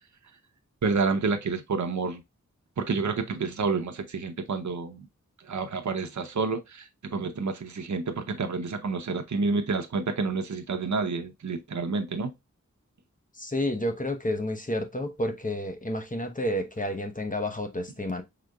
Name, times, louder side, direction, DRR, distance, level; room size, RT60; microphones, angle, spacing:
voice 1, 0.8-2.2 2.8-5.0 5.5-12.3, right 4 dB, 70° right, 0.7 m, -29 dB
voice 2, 13.4-18.2, left 1 dB, 25° left, 0.9 m, -30 dB
5.0 x 3.7 x 2.2 m
wide cardioid pair, 50°, 30 cm